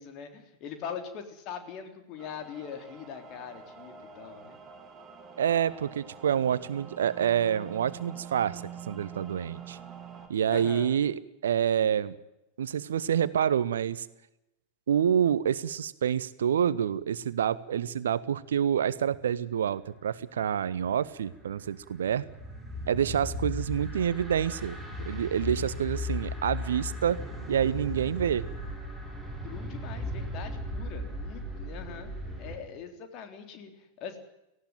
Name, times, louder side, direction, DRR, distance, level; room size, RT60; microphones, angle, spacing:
voice 1, 0.0-4.6 10.5-11.0 29.4-32.1 32.4-34.2, left 7 dB, 40° left, 7 dB, 3.6 m, -42 dB
sound 1, 2.2-10.3, right 7 dB, 20° right, 4.0 m, -46 dB
voice 2, 5.4-9.8 10.3-12.2 12.6-14.1 14.9-22.2 22.9-24.8 25.1-27.2 27.5-28.5, right 9 dB, 65° right, 18 dB, 0.9 m, -27 dB
sound 2, 20.8-32.6, left 1 dB, 5° left, 6.9 m, -37 dB
18.5 x 16.5 x 9.0 m, 0.89 s
figure-of-eight pair, 90°, 0 cm